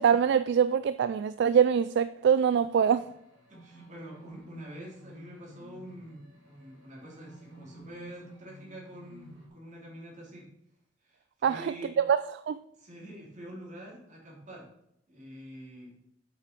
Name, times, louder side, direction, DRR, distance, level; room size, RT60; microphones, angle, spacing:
voice 1, 0.0-3.1 11.4-12.6, right 7 dB, 60° right, 0.3 m, -24 dB
sound 1, 2.9-9.5, right 1 dB, 90° right, 3.5 m, -52 dB
voice 2, 3.5-10.5 11.0-11.9 12.7-14.7 15.1-16.0, equal, 40° right, 3.2 m, -46 dB
7.7 x 5.8 x 5.2 m
head